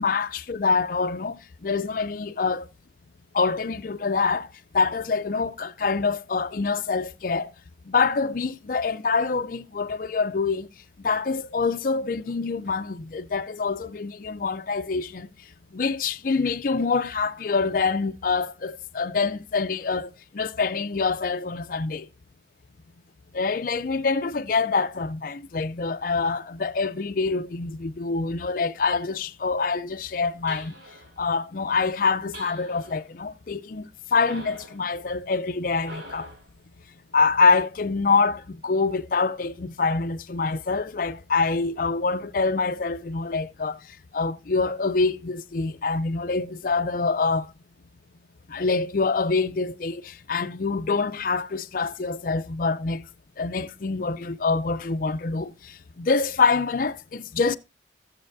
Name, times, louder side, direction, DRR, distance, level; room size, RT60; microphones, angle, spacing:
voice 1, 0.0-2.7 3.3-4.5 4.7-7.5 7.9-10.7 11.0-15.3 15.7-22.1 23.3-30.7 31.2-36.3 37.1-43.8 44.1-47.5 48.5-53.1 53.4-57.6, left 4 dB, 50° left, 0.5 m, -25 dB
sound 1, 30.5-31.2 32.3-33.1 34.3-34.8 35.8-36.5, equal, 80° right, 3.5 m, -43 dB
15.5 x 7.3 x 2.6 m
head